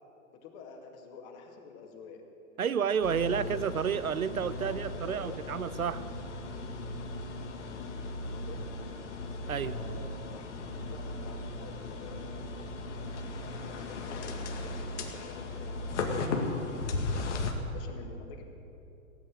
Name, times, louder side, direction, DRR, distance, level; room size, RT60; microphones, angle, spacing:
voice 1, 0.4-2.2 3.1-4.1 4.5-5.4 8.3-8.6 9.6-10.6 10.8-16.3 17.1-18.5, left 5 dB, 40° left, 3 dB, 2.4 m, -50 dB
voice 2, 2.6-6.1 9.5-9.8, right 7 dB, 85° right, 15 dB, 0.8 m, -30 dB
sound 1, 3.0-17.5, left 2 dB, 55° left, 2.1 m, -37 dB
17.5 x 8.8 x 9.0 m, 2.8 s
figure-of-eight pair, 110°, 41 cm